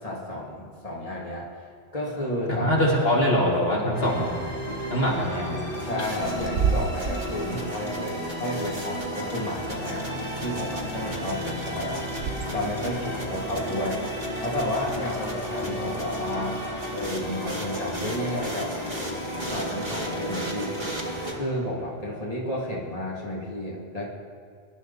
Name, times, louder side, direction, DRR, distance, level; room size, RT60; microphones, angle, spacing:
voice 1, 0.0-1.5 1.9-2.7 5.8-12.1 12.5-14.0 14.4-18.7 19.5-24.1, left 1 dB, 35° left, -5 dB, 2.8 m, -32 dB
voice 2, 2.6-4.3 4.9-5.6, equal, 65° left, -4 dB, 2.8 m, -23 dB
sound 1, 3.9-21.4, equal, 10° left, 2.4 m, -35 dB
Bird / Wind, 4.1-12.8, right 6 dB, 85° right, 1.1 m, -33 dB
sound 2, 4.7-21.3, equal, 45° right, 2.2 m, -36 dB
24.0 x 12.0 x 4.2 m, 2.2 s
omnidirectional pair, 1.1 m